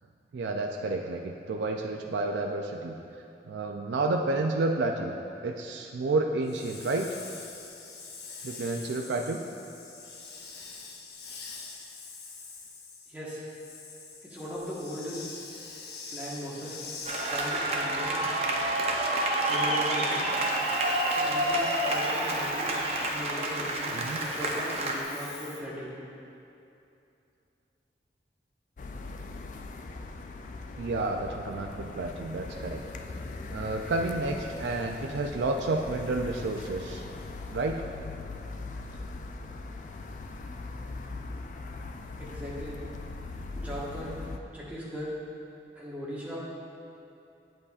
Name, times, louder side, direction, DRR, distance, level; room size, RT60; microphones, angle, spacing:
voice 1, 0.3-3.0 3.4-5.2 5.4-7.1 8.4-9.4 23.9-24.2 30.8-32.8 33.5-37.0 37.5-37.8, right 2 dB, 85° right, 2 dB, 0.4 m, -30 dB
Hiss, 6.4-17.9 20.2-25.6, left 4 dB, 70° left, 0.7 m, -45 dB
voice 2, 13.1-13.5 14.2-15.2 16.1-16.8 17.2-18.2 19.5-20.2 21.1-22.7 23.1-25.9 42.2-42.8 43.5-44.1 44.5-45.1 45.7-46.4, equal, 10° right, -7 dB, 1.3 m, -38 dB
sound 1, 17.0-25.0, right 1 dB, 35° right, 0.6 m, -28 dB
sound 2, 28.8-44.4, left 3 dB, 45° left, 0.3 m, -40 dB
8.2 x 7.7 x 2.4 m, 2.7 s
head